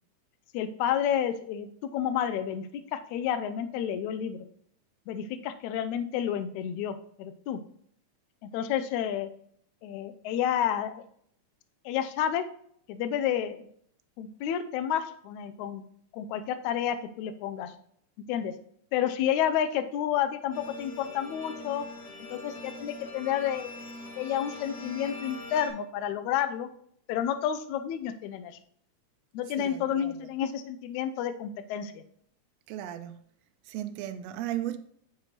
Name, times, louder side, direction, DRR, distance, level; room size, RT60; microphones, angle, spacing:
voice 1, 0.5-4.5 5.1-7.6 8.4-9.3 9.8-11.0 11.9-12.4 12.9-13.7 14.2-15.8 16.1-17.8 18.3-18.5 18.9-21.9 22.2-23.7 24.2-26.7 27.1-28.6 29.3-32.0, left 9 dB, 80° left, 1.9 m, -30 dB
sound 1, 20.5-25.7, left 2 dB, 55° left, 3.1 m, -42 dB
voice 2, 29.6-30.2 32.7-33.2 33.6-34.8, right 12 dB, 80° right, 1.5 m, -36 dB
9.1 x 6.6 x 3.0 m
omnidirectional pair, 3.7 m